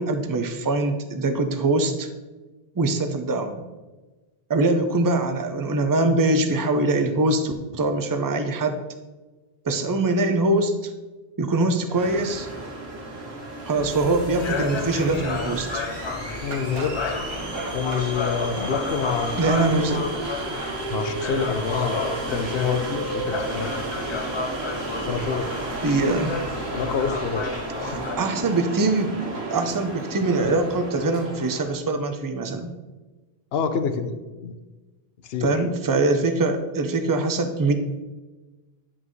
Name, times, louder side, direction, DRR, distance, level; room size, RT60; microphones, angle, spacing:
voice 1, 0.0-2.1 2.8-3.6 4.5-8.8 9.6-10.9 11.4-12.5 13.7-15.9 19.4-20.0 25.8-26.3 27.8-29.1 29.5-32.7 35.4-37.7, right 2 dB, 25° right, 7 dB, 0.5 m, -23 dB
sound 1, 11.9-31.8, right 2 dB, 90° right, 1.6 m, -33 dB
sound 2, 13.8-28.2, left 4 dB, 45° left, 0.4 m, -32 dB
voice 2, 16.4-17.1 17.7-19.8 20.9-23.7 25.0-25.5 26.7-27.5 27.9-28.0 33.5-34.2 34.4-34.5 35.3-35.6, left 6 dB, 75° left, 9 dB, 0.9 m, -27 dB
sound 3, 16.5-18.1, right 3 dB, 70° right, 1.2 m, -37 dB
10.5 x 5.8 x 3.1 m, 1.2 s
omnidirectional pair, 1.0 m